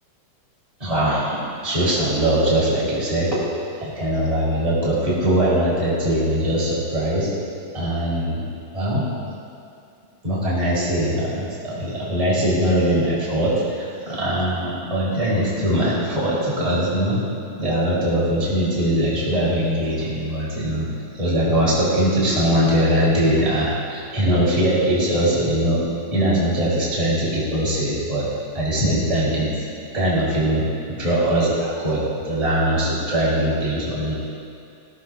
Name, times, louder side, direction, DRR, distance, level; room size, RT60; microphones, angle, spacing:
voice 1, 0.8-1.3 1.6-3.4 3.8-7.3 7.7-8.4 8.7-9.0 10.2-17.2 17.6-20.9 21.1-25.8 26.1-28.3 28.5-29.5 29.9-30.6 31.0-32.0 32.2-34.1, right 1 dB, 10° right, -8 dB, 4.3 m, -21 dB
22.0 x 17.0 x 2.7 m, 2.4 s
omnidirectional pair, 3.8 m